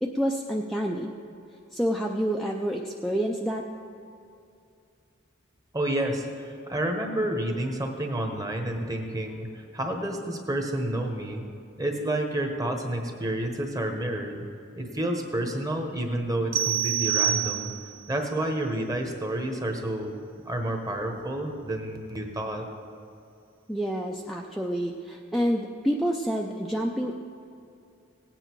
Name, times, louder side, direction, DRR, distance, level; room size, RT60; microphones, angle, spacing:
voice 1, 0.0-1.1 1.7-3.6 23.7-27.1, equal, ahead, 0 dB, 0.5 m, -28 dB
voice 2, 5.7-9.5 9.7-11.4 11.8-14.5 14.8-17.7 18.1-20.2 20.5-22.7, right 1 dB, 20° right, 3 dB, 1.2 m, -29 dB
sound 1, 16.5-18.0, right 11 dB, 90° right, 0.7 m, -26 dB
17.0 x 9.0 x 4.6 m, 2.5 s
head